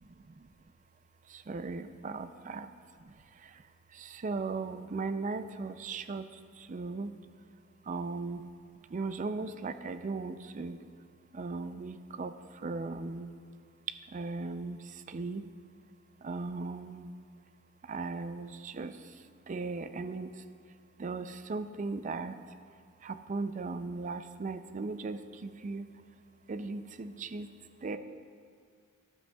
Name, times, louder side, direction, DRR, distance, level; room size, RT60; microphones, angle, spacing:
voice 1, 1.5-2.7 4.2-6.2 6.7-7.1 7.9-8.4 8.9-10.8 11.4-12.3 12.6-13.3 14.1-14.8 15.1-15.4 16.2-17.1 17.9-18.9 19.5-20.3 21.0-22.3 23.0-25.2 25.6-25.9 26.5-27.5 27.8-28.0, right 3 dB, 35° right, 11 dB, 0.4 m, -37 dB
13.0 x 11.5 x 2.3 m, 2.1 s
head